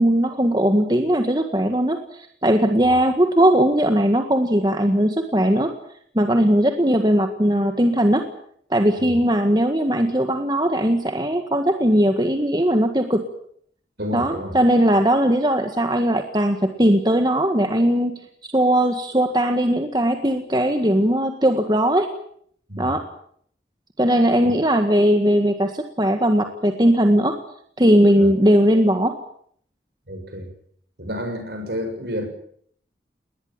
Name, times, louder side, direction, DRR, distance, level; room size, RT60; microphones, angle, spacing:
voice 1, 0.0-5.7 6.1-8.3 8.7-13.3 14.1-22.1 22.8-23.0 24.0-27.4 27.8-29.2, equal, 25° right, 6 dB, 1.7 m, -19 dB
voice 2, 14.0-14.6 22.7-23.0 28.2-28.3 30.1-30.5 31.0-32.3, equal, 70° right, 6 dB, 7.3 m, -30 dB
20.5 x 20.0 x 9.1 m, 0.64 s
head